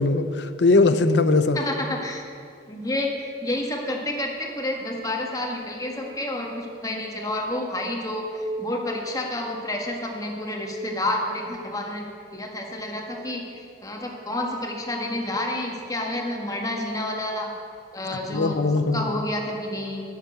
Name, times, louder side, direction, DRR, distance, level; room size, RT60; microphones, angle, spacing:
voice 1, 0.0-1.6 18.3-19.1, left 3 dB, 65° left, 11 dB, 0.7 m, -20 dB
voice 2, 1.5-2.2 2.7-12.0 12.3-17.5 17.9-18.6 18.9-20.0, left 1 dB, 20° left, 1 dB, 1.6 m, -29 dB
12.0 x 7.2 x 9.3 m, 2.4 s
head